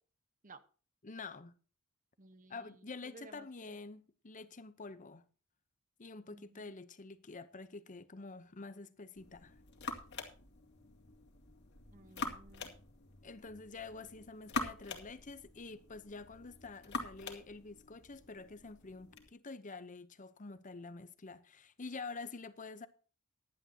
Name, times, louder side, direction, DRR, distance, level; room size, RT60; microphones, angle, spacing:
voice 1, 1.0-1.6 2.5-5.3 6.0-9.6 13.2-22.9, left 3 dB, 35° left, 0.8 m, -48 dB
voice 2, 2.2-3.8 6.3-6.7 11.9-12.8, right 3 dB, 35° right, 1.1 m, -57 dB
sound 1, 9.2-19.3, left 3 dB, 55° left, 2.4 m, -45 dB
16.5 x 11.0 x 2.9 m
head